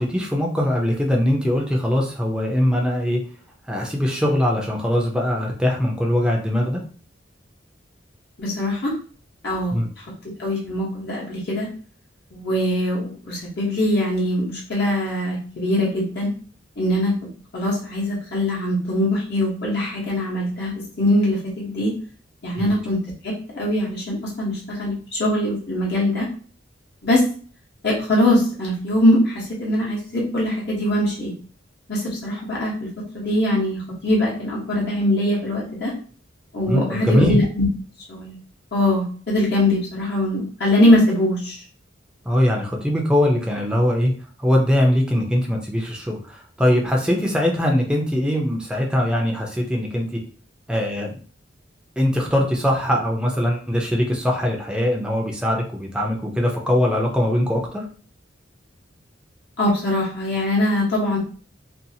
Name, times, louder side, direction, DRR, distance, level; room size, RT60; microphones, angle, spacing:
voice 1, 0.0-3.2 3.7-6.8 9.7-9.9 22.6-22.7 36.7-37.4 42.3-44.1 44.4-50.2 50.7-51.2 52.0-57.9, left 1 dB, 5° right, 0 dB, 0.5 m, -21 dB
voice 2, 8.4-8.9 9.4-9.8 10.4-11.7 12.3-16.3 16.8-17.1 17.5-21.9 22.4-23.0 23.2-26.3 27.0-27.2 27.8-31.3 31.9-32.7 33.1-35.9 36.5-37.7 38.1-38.4 38.7-41.6 59.6-61.2, left 1 dB, 60° left, -4 dB, 0.9 m, -22 dB
2.6 x 2.4 x 2.7 m, 0.42 s
head